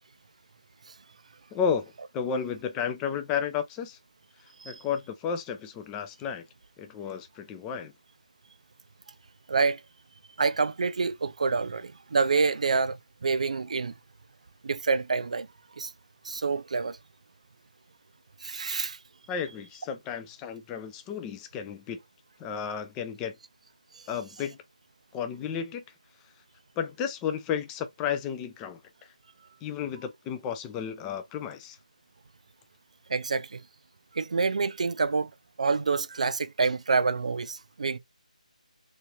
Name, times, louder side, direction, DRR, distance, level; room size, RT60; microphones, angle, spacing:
voice 1, 1.5-4.0 4.6-6.5 6.8-7.9 19.3-22.0 22.4-23.4 24.1-24.6 25.1-25.8 26.8-28.8 29.6-31.8, left 7 dB, 10° left, 0.3 m, -32 dB
voice 2, 9.5-9.8 10.4-13.9 14.6-15.5 15.8-15.9 16.2-17.0 18.4-19.0 33.1-33.6 34.1-35.3 35.6-38.0, right 4 dB, 55° right, 0.4 m, -27 dB
3.3 x 3.1 x 2.6 m
figure-of-eight pair, 160°, 4 cm